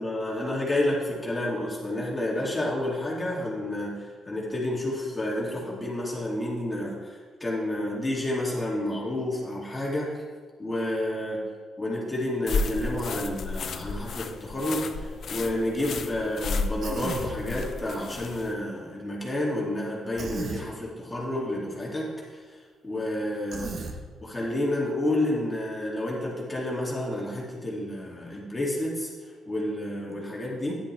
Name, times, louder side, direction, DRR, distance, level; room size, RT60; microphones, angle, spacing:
voice 1, 0.0-10.1 10.6-11.4 11.8-22.6 22.8-23.7 24.2-30.8, left 1 dB, 15° left, -5 dB, 2.6 m, -30 dB
sound 1, 12.5-18.5, left 4 dB, 55° left, 0.7 m, -33 dB
Human voice, 16.8-17.4 20.2-20.6 23.5-24.0, right 4 dB, 50° right, 1.1 m, -34 dB
10.5 x 9.8 x 3.4 m, 1.5 s
cardioid pair, 90°, 0 cm